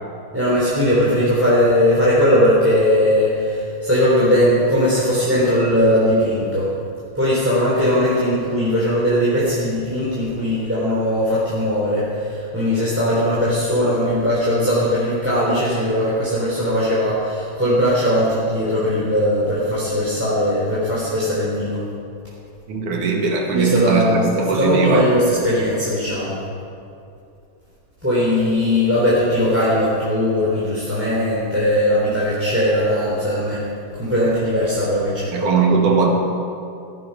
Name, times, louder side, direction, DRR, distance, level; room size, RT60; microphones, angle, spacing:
voice 1, 0.3-6.7 7.1-21.8 23.5-24.3 24.5-26.4 28.0-33.6 33.9-35.5, equal, 5° right, -8 dB, 3.2 m, -19 dB
voice 2, 22.7-25.1 35.3-36.1, right 4 dB, 70° right, 1 dB, 3.4 m, -19 dB
17.0 x 14.0 x 5.7 m, 2.6 s
omnidirectional pair, 3.8 m